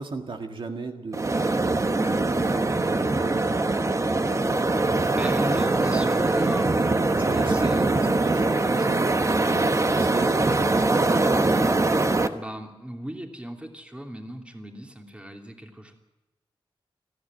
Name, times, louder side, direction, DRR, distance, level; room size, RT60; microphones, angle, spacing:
voice 1, 0.0-3.5 7.2-10.7, right 4 dB, 65° right, 4 dB, 1.9 m, -36 dB
sound 1, 1.1-12.3, right 2 dB, 35° right, 1.2 m, -22 dB
voice 2, 5.2-8.0 12.3-15.9, equal, 10° right, 3 dB, 2.8 m, -37 dB
19.5 x 15.0 x 9.5 m, 1.1 s
wide cardioid pair, 95°, 9 cm